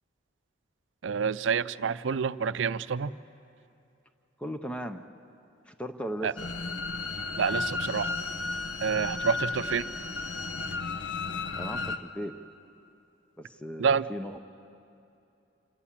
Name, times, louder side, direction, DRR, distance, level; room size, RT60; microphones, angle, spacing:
voice 1, 1.0-3.1 6.2-6.3 7.4-8.1 8.8-9.9 13.8-14.0, right 6 dB, 80° right, 16 dB, 0.5 m, -28 dB
voice 2, 4.4-5.0 5.7-6.3 11.6-12.4 13.4-14.4, equal, 5° left, 7 dB, 0.7 m, -37 dB
sound 1, 6.4-12.0, left 3 dB, 80° left, 0.9 m, -33 dB
26.5 x 17.0 x 7.5 m, 2.7 s
head